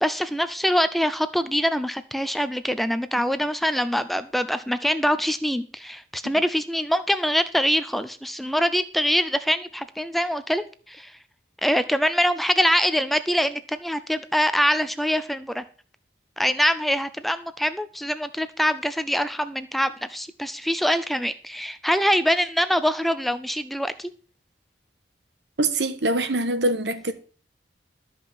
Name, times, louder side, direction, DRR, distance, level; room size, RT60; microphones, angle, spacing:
voice 1, 0.0-11.1 11.6-15.6 16.4-24.1, equal, ahead, 0.5 m, -24 dB
voice 2, 25.6-27.1, right 2 dB, 80° right, 1.3 m, -24 dB
12.5 x 5.4 x 7.6 m
head